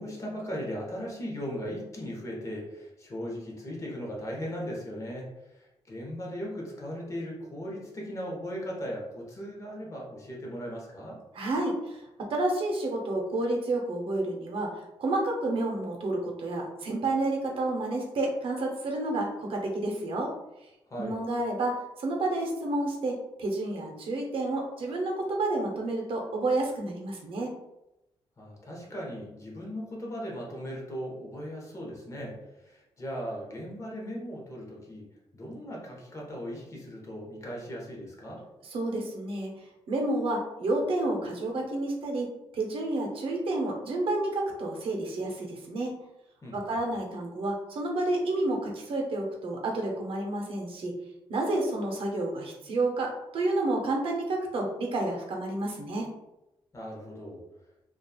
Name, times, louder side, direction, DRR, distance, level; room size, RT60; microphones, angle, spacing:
voice 1, 0.0-11.2 20.9-21.2 28.4-35.1 35.3-38.4 46.4-46.8 56.7-57.4, equal, 30° left, -2 dB, 0.8 m, -38 dB
voice 2, 11.4-11.7 12.2-14.7 15.0-20.3 21.0-27.5 38.7-39.5 39.9-45.9 46.5-50.9 51.3-56.1, right 2 dB, 60° right, 0 dB, 0.7 m, -30 dB
2.8 x 2.3 x 2.3 m, 0.92 s
cardioid pair, 130°, 10 cm